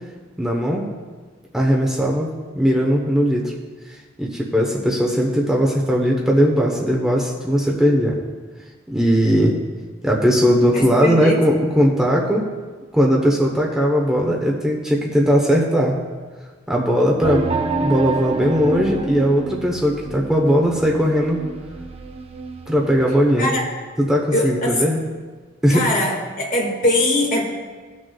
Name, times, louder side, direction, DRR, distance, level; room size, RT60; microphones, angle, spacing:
voice 1, 0.4-0.9 1.5-2.3 2.5-3.5 4.2-8.2 8.9-9.6 10.0-12.5 12.9-16.0 16.7-17.5 17.8-21.4 22.7-23.5 24.0-25.0 25.6-25.9, equal, 5° right, -2 dB, 0.9 m, -18 dB
voice 2, 10.7-11.4 23.4-23.6 24.3-24.8 25.7-27.4, left 1 dB, 45° left, -1 dB, 1.8 m, -21 dB
sound 1, 17.2-23.5, right 3 dB, 30° right, 0.5 m, -28 dB
17.5 x 6.3 x 2.3 m, 1.4 s
head